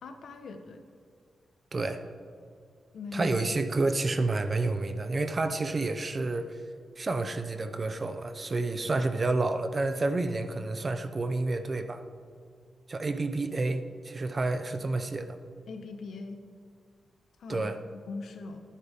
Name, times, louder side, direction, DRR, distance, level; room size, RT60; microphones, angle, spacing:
voice 1, 0.0-0.8 2.9-3.4 15.7-16.4 17.4-18.6, left 3 dB, 70° left, 6 dB, 1.2 m, -40 dB
voice 2, 1.7-2.0 3.1-6.6 7.0-12.0 12.9-15.4 17.5-17.8, right 3 dB, 30° right, 9 dB, 0.7 m, -29 dB
20.5 x 9.9 x 3.7 m, 2.2 s
wide cardioid pair, 175°, 0 cm